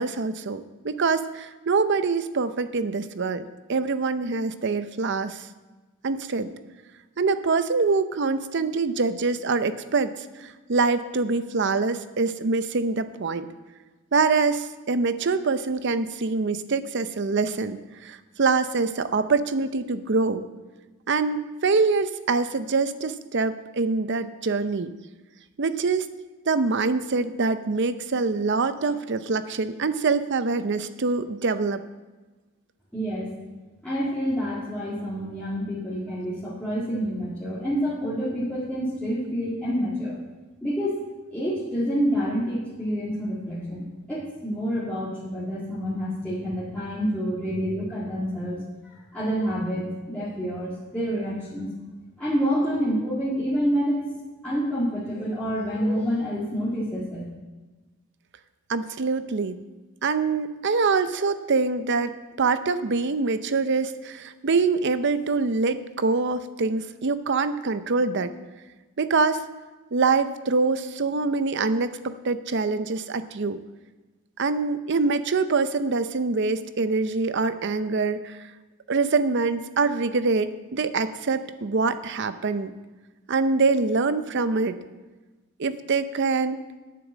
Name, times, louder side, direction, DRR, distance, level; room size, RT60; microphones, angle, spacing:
voice 1, 0.0-5.5 6.0-6.5 7.2-13.5 14.1-20.4 21.1-24.9 25.6-26.1 26.5-31.8 58.7-59.6 60.0-68.3 69.0-69.4 69.9-73.6 74.4-78.4 78.9-82.7 83.3-84.8 85.6-86.6, right 4 dB, 55° right, 12 dB, 0.6 m, -25 dB
voice 2, 32.9-33.3 33.8-40.2 40.6-41.0 41.3-48.6 48.8-51.7 52.2-54.0 54.4-57.2, equal, 5° left, -10 dB, 2.0 m, -28 dB
9.6 x 7.1 x 7.3 m, 1.2 s
head